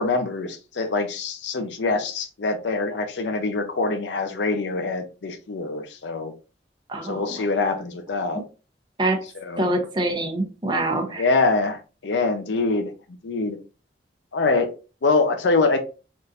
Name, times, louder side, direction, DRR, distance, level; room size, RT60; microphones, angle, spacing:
voice 1, 0.0-6.3 7.0-8.4 9.4-9.7 11.2-12.9 13.2-13.6 14.3-14.7 15.0-15.8, left 3 dB, 90° left, 0.5 m, -24 dB
voice 2, 6.9-7.4 9.0-9.2 9.6-11.2, right 1 dB, 25° right, 0.7 m, -25 dB
3.6 x 2.4 x 2.7 m
head